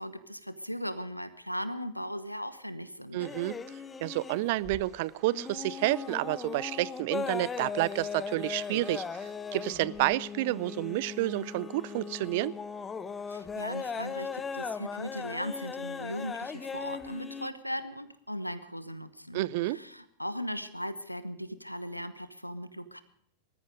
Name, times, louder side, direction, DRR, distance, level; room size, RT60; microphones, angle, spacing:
voice 1, 0.0-3.3 13.3-23.0, equal, 90° left, 14 dB, 1.1 m, -38 dB
voice 2, 3.1-12.6 19.3-19.8, right 18 dB, 50° right, 21 dB, 0.5 m, -30 dB
sound 1, 3.2-5.0 5.3-17.5, left 5 dB, 15° left, 0.9 m, -38 dB
20.0 x 14.0 x 5.0 m, 0.68 s
figure-of-eight pair, 90°, 0 cm